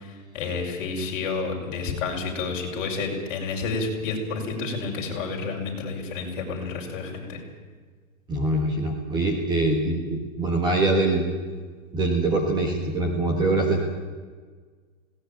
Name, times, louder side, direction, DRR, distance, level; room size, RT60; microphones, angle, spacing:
voice 1, 0.3-7.4, left 4 dB, 35° left, -1 dB, 5.7 m, -30 dB
voice 2, 8.3-11.2 11.9-13.8, right 2 dB, 10° right, 2 dB, 1.6 m, -23 dB
20.0 x 18.0 x 9.2 m, 1.5 s
hypercardioid pair, 170°, 42 cm